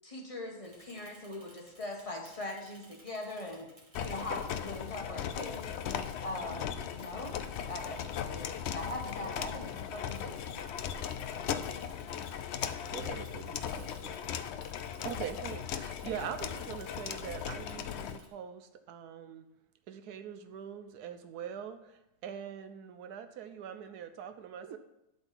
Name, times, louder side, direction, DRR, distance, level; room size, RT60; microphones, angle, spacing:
voice 1, 0.0-3.7 4.0-5.8 6.2-7.4 7.7-8.5 8.7-10.7, left 2 dB, 25° left, 0 dB, 1.3 m, -41 dB
Bicycle / Mechanisms, 0.6-18.3, right 1 dB, 20° right, 2.0 m, -60 dB
sound 1, 3.9-18.2, left 8 dB, 70° left, 0.6 m, -38 dB
voice 2, 12.9-14.4 24.6-24.8, right 7 dB, 70° right, 9 dB, 1.0 m, -48 dB
voice 3, 15.0-19.5 19.9-24.8, right 8 dB, 85° right, 9 dB, 1.3 m, -42 dB
11.5 x 4.0 x 5.8 m, 0.88 s
omnidirectional pair, 1.6 m